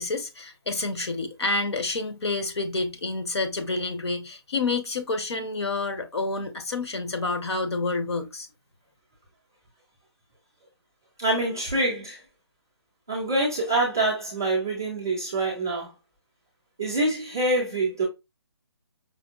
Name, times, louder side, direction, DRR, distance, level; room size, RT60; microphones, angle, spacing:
voice 1, 0.0-8.5, left 3 dB, 75° left, 0.9 m, -29 dB
voice 2, 11.2-12.2 13.1-15.9 16.8-18.0, right 2 dB, 10° right, 0.3 m, -25 dB
5.0 x 2.1 x 2.3 m
hypercardioid pair, 175°, 14 cm